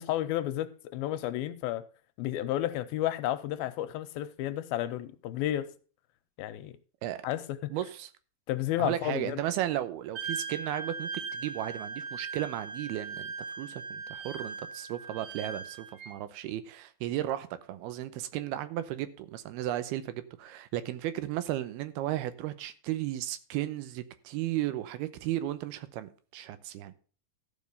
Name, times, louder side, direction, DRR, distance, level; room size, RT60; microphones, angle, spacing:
voice 1, 0.0-1.8 2.2-5.7 6.4-6.8 7.2-7.7 8.5-9.4, left 13 dB, 85° left, 2.5 m, -32 dB
voice 2, 7.7-8.1 8.8-26.9, right 13 dB, 85° right, 2.8 m, -35 dB
Wind instrument woodwind instrument, 10.2-16.1, right 4 dB, 60° right, 2.3 m, -39 dB
14.0 x 5.3 x 5.4 m
omnidirectional pair, 4.4 m